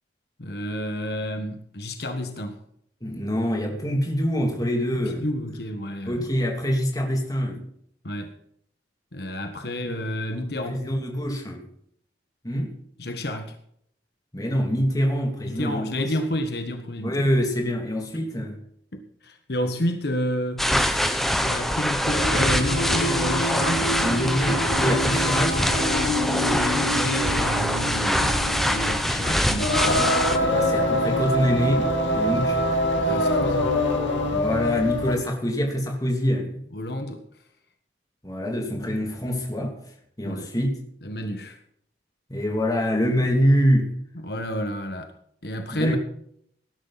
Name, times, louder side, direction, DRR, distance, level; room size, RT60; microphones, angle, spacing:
voice 1, 0.4-2.6 4.9-6.2 8.0-8.4 9.1-10.9 13.0-13.6 15.5-17.3 18.9-24.0 24.9-25.2 25.9-30.1 33.0-33.8 36.7-37.2 40.2-40.5 41.0-41.6 44.1-45.1 45.4-46.0, left 1 dB, 60° left, 1.5 m, -30 dB
voice 2, 3.0-5.2 6.1-7.7 9.8-10.0 10.7-11.6 12.4-12.7 14.3-16.1 17.0-18.6 23.8-25.8 30.4-32.6 34.3-36.6 38.2-39.8 40.2-40.8 42.3-43.9 45.7-46.0, equal, 20° left, 2.7 m, -25 dB
sound 1, 20.6-30.4, equal, ahead, 0.9 m, -24 dB
Singing, 22.1-35.3, left 1 dB, 90° left, 3.2 m, -25 dB
18.5 x 11.0 x 4.2 m
head